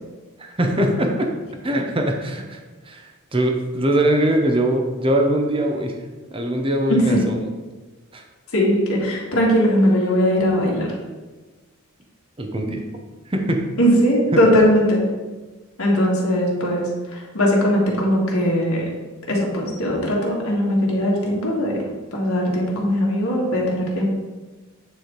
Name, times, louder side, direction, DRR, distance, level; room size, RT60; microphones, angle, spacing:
voice 1, 0.4-1.3 1.6-2.6 2.9-6.0 6.3-7.3 8.1-8.2 12.4-12.8 13.3-13.6, right 1 dB, 25° right, 3 dB, 0.7 m, -21 dB
voice 2, 6.9-7.3 8.5-10.9 13.8-15.0 15.8-18.9 19.3-24.0, equal, 90° left, -3 dB, 1.9 m, -19 dB
9.0 x 3.4 x 4.5 m, 1.2 s
head